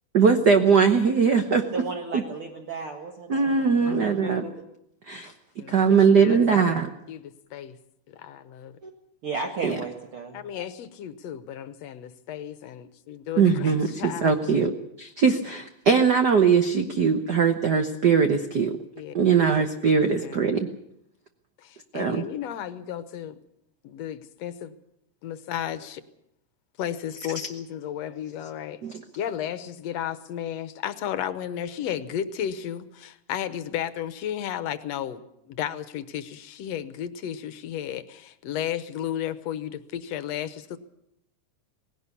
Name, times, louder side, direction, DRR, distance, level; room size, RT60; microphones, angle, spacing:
voice 1, 0.1-1.6 2.1-2.2 3.3-4.4 5.1-5.3 5.7-6.9 9.6-9.7 13.4-14.7 15.0-18.7 19.1-20.7 21.9-22.2 28.8-28.9, right 6 dB, 80° right, 6 dB, 0.9 m, -21 dB
voice 2, 1.7-4.6 8.8-8.9 9.2-10.7, right 4 dB, 50° right, 1 dB, 2.3 m, -35 dB
voice 3, 5.6-6.8 7.1-7.8 8.1-8.8 10.3-14.3 19.0-19.2 20.2-20.4 21.6-23.4 23.8-24.7 25.2-26.0 26.8-28.8 29.2-35.2 35.5-40.5, left 10 dB, 70° left, 12 dB, 2.0 m, -33 dB
19.0 x 17.0 x 8.4 m, 0.79 s
omnidirectional pair, 3.5 m